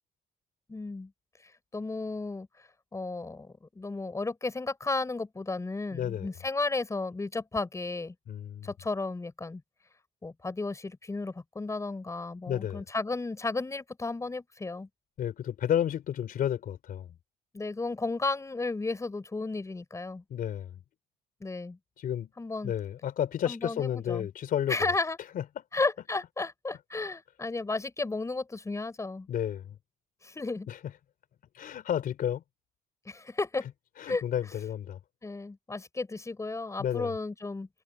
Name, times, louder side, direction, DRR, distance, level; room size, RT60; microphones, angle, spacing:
voice 1, 0.7-1.1 1.4-2.5 2.9-8.1 8.6-9.6 10.2-14.9 17.5-20.2 21.4-21.8 22.4-22.7 23.5-24.3 24.7-25.2 25.7-29.3 30.2-30.7 33.1-33.7 34.1-34.2 35.2-37.7, left 3 dB, 20° left, 6.0 m, -33 dB
voice 2, 5.9-6.3 8.3-8.7 12.5-12.8 15.2-17.1 20.3-20.8 22.0-22.3 22.6-24.9 25.3-25.4 29.3-29.8 30.7-30.8 31.5-32.4 34.0-35.0 36.8-37.1, left 10 dB, 55° left, 4.1 m, -31 dB
cardioid pair, 110°, 17 cm